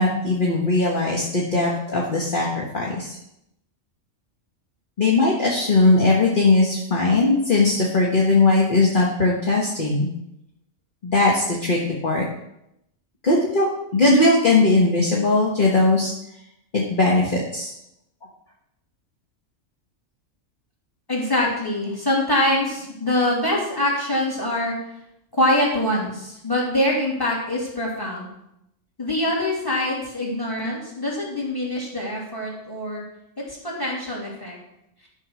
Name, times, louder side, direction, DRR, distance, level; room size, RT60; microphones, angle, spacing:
voice 1, 0.0-3.2 5.0-10.1 11.0-12.3 13.2-16.1 16.7-17.7, left 2 dB, 40° left, -3 dB, 1.5 m, -19 dB
voice 2, 21.1-24.8 25.4-28.3 29.0-33.0 33.5-34.6, left 1 dB, 15° left, -3 dB, 3.0 m, -24 dB
12.0 x 4.9 x 6.3 m, 0.82 s
omnidirectional pair, 1.3 m